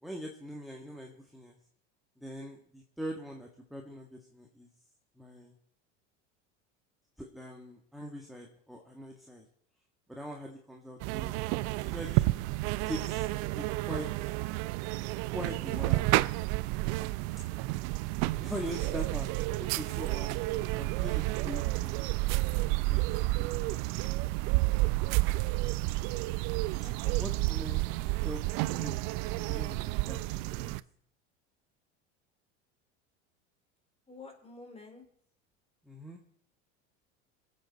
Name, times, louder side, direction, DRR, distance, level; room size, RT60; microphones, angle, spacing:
voice 1, 0.0-1.6 2.2-4.7 5.2-5.5 7.2-9.5 10.1-11.4 11.8-12.3 12.8-13.3 13.5-14.3 15.3-16.1 18.4-20.5 20.8-22.1 22.8-23.8 27.2-27.8 28.2-29.0 29.5-30.7 35.8-36.2, equal, ahead, 0 dB, 1.7 m, -42 dB
sound 1, 11.0-30.8, right 20 dB, 60° right, 0.6 m, -30 dB
voice 2, 26.8-27.2 34.1-35.0, left 3 dB, 15° left, 4 dB, 3.6 m, -49 dB
23.5 x 8.4 x 4.1 m, 0.66 s
hypercardioid pair, 90°, 36 cm